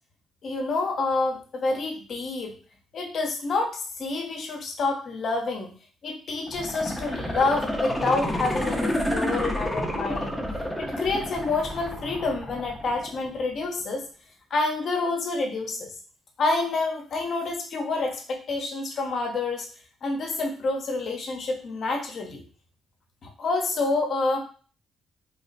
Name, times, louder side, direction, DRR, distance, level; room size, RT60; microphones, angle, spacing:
voice 1, 0.4-2.5 2.9-5.7 6.0-10.4 10.8-14.1 14.5-15.9 16.4-19.7 20.0-22.4 23.2-24.4, left 3 dB, 60° left, 2 dB, 0.8 m, -28 dB
sound 1, 6.4-13.4 13.8-13.9, equal, 5° left, 0.8 m, -30 dB
3.2 x 2.1 x 3.9 m, 0.40 s
cardioid pair, 90°, 0 cm